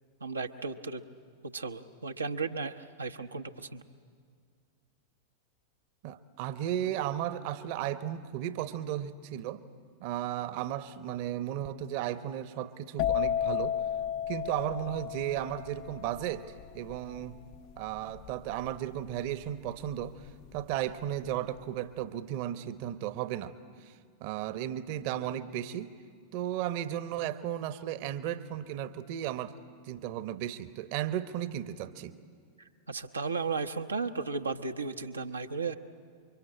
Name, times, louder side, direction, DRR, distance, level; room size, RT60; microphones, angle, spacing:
voice 1, 0.2-1.0 1.5-3.8 32.9-35.7, right 4 dB, 80° right, 5 dB, 0.9 m, -35 dB
voice 2, 6.0-9.6 10.0-13.8 14.3-17.4 17.8-23.5 23.8-23.9 24.2-25.9 26.3-29.6 29.9-32.1, right 11 dB, 45° right, 13 dB, 1.1 m, -35 dB
sound 1, 13.0-20.6 20.8-21.3, left 9 dB, 45° left, 0.6 m, -34 dB
28.5 x 24.0 x 8.6 m, 2.1 s
figure-of-eight pair, 90°, 0 cm